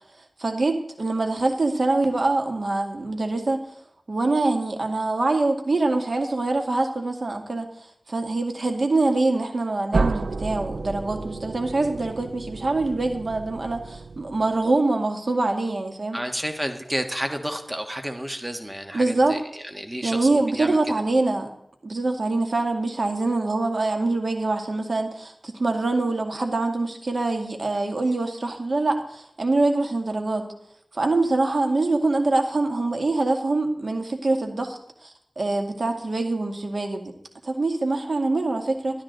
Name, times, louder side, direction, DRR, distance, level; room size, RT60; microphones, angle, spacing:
voice 1, 0.4-3.6 4.1-7.7 8.1-16.2 18.9-19.4 20.0-21.5 21.8-30.5 30.9-37.1 37.4-39.0, right 2 dB, 60° right, 4 dB, 2.0 m, -24 dB
sound 1, 9.9-14.7, right 3 dB, 85° right, 0.4 m, -31 dB
voice 2, 16.1-20.9, equal, 15° right, 6 dB, 1.5 m, -31 dB
12.5 x 12.5 x 4.0 m, 0.72 s
wide cardioid pair, 60°, 0 cm